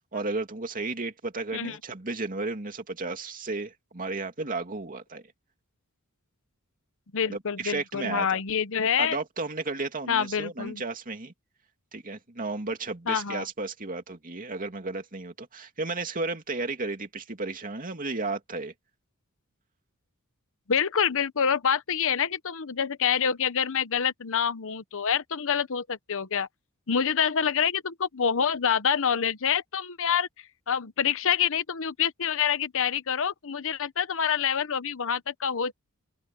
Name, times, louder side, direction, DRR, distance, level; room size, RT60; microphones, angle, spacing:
voice 1, 0.1-5.2 7.3-8.4 9.0-11.3 11.9-18.7, right 3 dB, 40° right, 2.6 m, -33 dB
voice 2, 7.1-9.2 10.1-10.8 13.1-13.4 20.7-26.5 26.9-30.3 30.7-35.7, left 7 dB, 65° left, 0.9 m, -26 dB
head